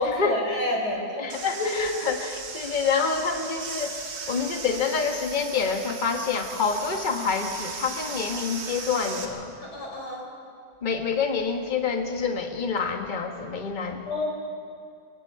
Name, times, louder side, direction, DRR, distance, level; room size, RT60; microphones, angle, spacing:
voice 1, 0.0-1.9 9.6-10.2 14.1-14.3, left 2 dB, 60° left, -1 dB, 4.8 m, -28 dB
voice 2, 1.2-9.5 10.8-14.1, left 5 dB, 25° left, 4 dB, 1.4 m, -27 dB
sound 1, 1.3-9.2, right 4 dB, 65° right, 2.3 m, -37 dB
25.0 x 22.5 x 4.7 m, 2.3 s
omnidirectional pair, 2.0 m